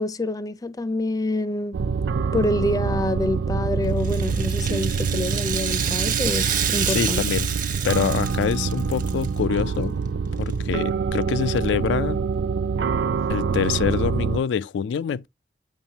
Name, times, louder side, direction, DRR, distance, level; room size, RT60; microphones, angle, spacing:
voice 1, 0.0-1.8 2.3-7.3, left 1 dB, 20° left, 0.5 m, -26 dB
sound 1, 1.7-14.4, right 5 dB, 90° right, 0.4 m, -25 dB
Rattle (instrument), 4.0-9.3 9.6-9.7 10.5-10.6, right 9 dB, 50° right, 0.9 m, -28 dB
voice 2, 6.9-7.5 7.8-9.9 10.4-12.2 13.3-15.3, left 7 dB, 85° left, 0.3 m, -25 dB
7.2 x 5.8 x 2.8 m
head